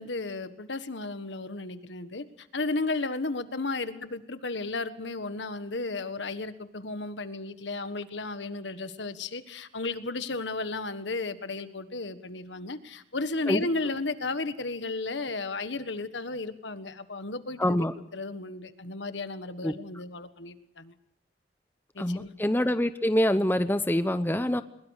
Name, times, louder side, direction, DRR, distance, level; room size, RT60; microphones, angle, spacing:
voice 1, 0.0-17.9 18.1-20.9 21.9-22.3, left 3 dB, 85° left, 11 dB, 1.5 m, -34 dB
voice 2, 17.6-17.9 19.6-19.7 22.0-24.6, left 1 dB, 10° left, 11 dB, 0.7 m, -25 dB
22.0 x 22.0 x 6.5 m, 0.81 s
head